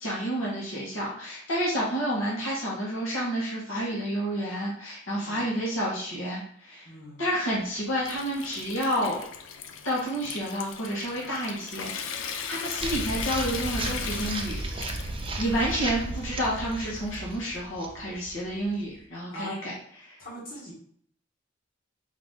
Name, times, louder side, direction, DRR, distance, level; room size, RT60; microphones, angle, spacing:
voice 1, 0.0-6.9 7.2-9.2 9.8-14.6 15.4-19.7 20.0-20.2, equal, 85° left, -5 dB, 1.7 m, -30 dB
voice 2, 5.2-5.5 6.9-7.2 19.3-19.6 20.2-20.7, left 1 dB, 50° left, -6 dB, 1.9 m, -40 dB
Water tap faucet / Sink (filling or washing) / Trickle dribble, 7.6-17.5, left 6 dB, 70° left, 0.5 m, -39 dB
sound 1, 12.8-19.0, right 2 dB, 25° right, 0.6 m, -34 dB
4.8 x 2.9 x 3.8 m, 0.62 s
head